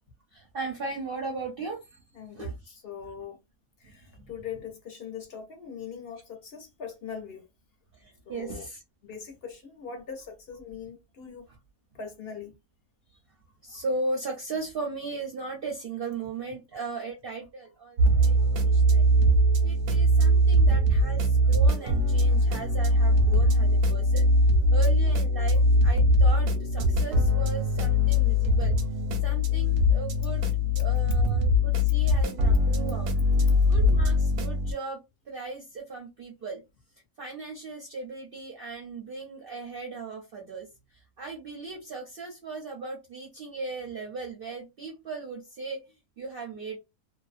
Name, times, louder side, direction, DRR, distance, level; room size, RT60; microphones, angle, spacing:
voice 1, 0.3-2.7 3.0-3.1 3.8-4.4 7.9-8.8 11.5-11.6 13.1-13.2 13.6-19.1 19.6-24.3 24.7-28.8 29.2-30.5 30.8-33.1 33.7-36.6 37.2-45.8 46.2-46.8, right 3 dB, 60° right, 0.6 m, -37 dB
voice 2, 2.1-3.4 3.8-7.5 8.3-8.6 9.0-11.5 12.0-12.5 18.7-18.9, left 7 dB, 55° left, 0.6 m, -41 dB
sound 1, 18.0-34.7, left 1 dB, 85° right, 1.1 m, -22 dB
2.6 x 2.1 x 2.4 m
omnidirectional pair, 1.6 m